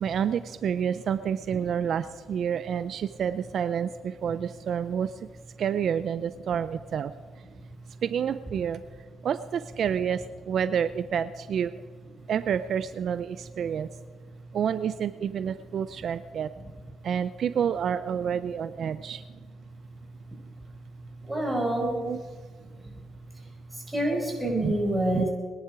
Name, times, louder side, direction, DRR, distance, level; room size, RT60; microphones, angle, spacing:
voice 1, 0.0-5.1 5.6-7.1 8.0-8.8 9.2-11.7 12.3-13.9 14.5-16.5 17.0-19.2 21.8-22.2 24.6-24.7 25.1-25.3, right 8 dB, 60° right, 13 dB, 0.5 m, -29 dB
voice 2, 21.2-22.1 22.6-23.0 23.3-25.3, right 1 dB, 10° right, -1 dB, 5.0 m, -28 dB
22.0 x 10.5 x 4.8 m, 1.5 s
cardioid pair, 90°, 0 cm